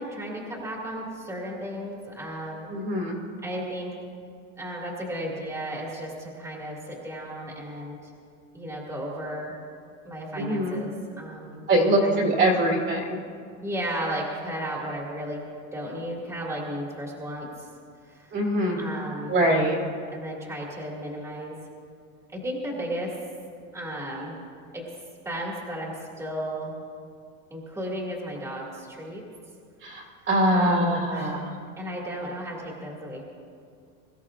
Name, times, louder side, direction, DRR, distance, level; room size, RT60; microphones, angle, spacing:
voice 1, 0.0-2.7 3.4-3.9 4.6-8.1 8.5-9.5 10.0-12.3 13.6-15.4 15.7-17.7 18.0-18.4 18.8-19.4 20.1-21.5 22.3-23.1 23.7-24.4 24.7-24.8 25.2-26.8 27.5-29.2 29.9-30.1 30.5-31.4 31.8-33.2, equal, 5° right, -3 dB, 2.2 m, -34 dB
voice 2, 2.7-3.1 10.4-10.8 11.7-13.2 18.3-19.0 19.3-19.7 29.8-31.5, right 1 dB, 30° right, -1 dB, 2.3 m, -23 dB
23.0 x 13.5 x 2.5 m, 2.3 s
supercardioid pair, 150°, 39 cm